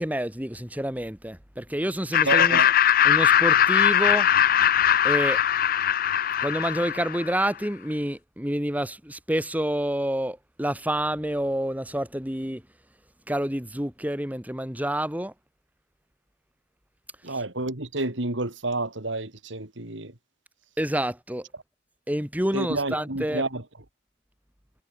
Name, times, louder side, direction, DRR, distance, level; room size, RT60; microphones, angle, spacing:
voice 1, 0.0-2.6 3.0-4.7 5.0-5.4 6.4-12.6 13.3-15.3 17.3-17.4 20.8-21.4 22.1-23.4, right 1 dB, 10° right, 3.0 m, -28 dB
Laughter, 2.1-7.4, left 10 dB, 50° left, 0.5 m, -20 dB
voice 2, 2.2-2.7 17.2-20.1 22.5-23.6, right 2 dB, 70° right, 2.9 m, -29 dB
head